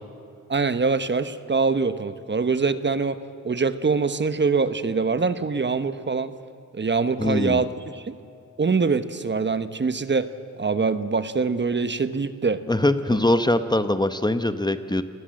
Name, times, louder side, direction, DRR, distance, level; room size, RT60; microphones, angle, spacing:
voice 1, 0.5-6.3 6.7-7.7 7.9-8.2 8.6-10.3 10.6-12.6, right 4 dB, 35° right, 12 dB, 1.1 m, -24 dB
voice 2, 7.2-7.6 12.7-15.0, left 1 dB, 15° left, 11 dB, 1.0 m, -22 dB
28.5 x 19.5 x 7.7 m, 2.7 s
cardioid pair, 90°, 31 cm